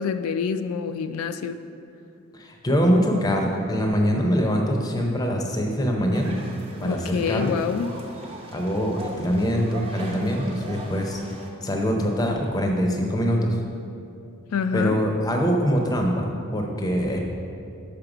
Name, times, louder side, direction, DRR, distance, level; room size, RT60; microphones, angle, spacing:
voice 1, 0.0-1.6 6.8-7.9 14.5-15.0, left 6 dB, 90° left, 10 dB, 0.3 m, -26 dB
voice 2, 2.3-6.3 6.8-7.6 8.5-11.2 11.6-13.6 14.7-17.2, equal, 20° left, 1 dB, 0.6 m, -23 dB
sound 1, 6.1-11.5, right 2 dB, 25° right, 0.7 m, -41 dB
5.6 x 5.1 x 5.9 m, 2.7 s
head